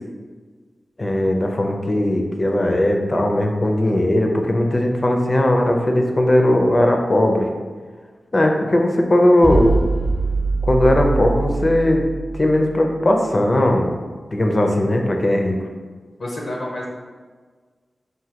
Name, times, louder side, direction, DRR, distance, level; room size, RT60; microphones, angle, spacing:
voice 1, 1.0-7.5 8.3-9.7 10.6-12.0 12.4-14.0 14.3-15.6, left 1 dB, 40° left, 2 dB, 0.6 m, -18 dB
sound 1, 9.4-12.9, right 3 dB, 25° right, 0.6 m, -23 dB
voice 2, 16.2-16.9, left 1 dB, 80° left, -4 dB, 0.8 m, -28 dB
4.9 x 2.7 x 2.9 m, 1.5 s
cardioid pair, 60°, 0 cm